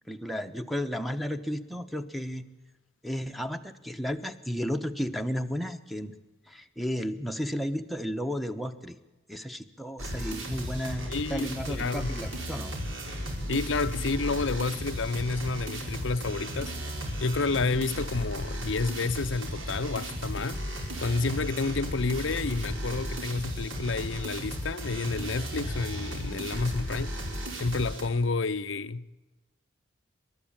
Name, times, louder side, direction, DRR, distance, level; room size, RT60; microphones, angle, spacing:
voice 1, 0.1-2.4 3.0-6.1 6.5-9.0 9.3-12.8, equal, ahead, 0.9 m, -33 dB
sound 1, 10.0-28.0, equal, 80° right, 5.1 m, -35 dB
voice 2, 11.1-12.1 13.5-16.8 17.2-20.6 21.0-27.1 27.6-29.0, left 3 dB, 70° left, 0.7 m, -30 dB
28.0 x 13.0 x 8.8 m
head